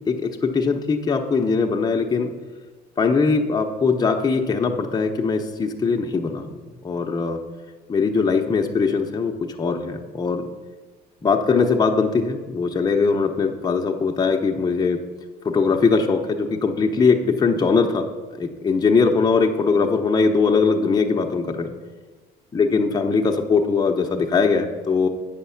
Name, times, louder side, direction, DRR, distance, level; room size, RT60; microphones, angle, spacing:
voice 1, 0.1-2.3 3.0-7.4 7.9-10.5 11.2-15.0 15.4-21.7 22.5-25.1, left 4 dB, 25° left, 2 dB, 0.8 m, -21 dB
8.1 x 5.8 x 5.7 m, 1.3 s
cardioid pair, 110°, 17 cm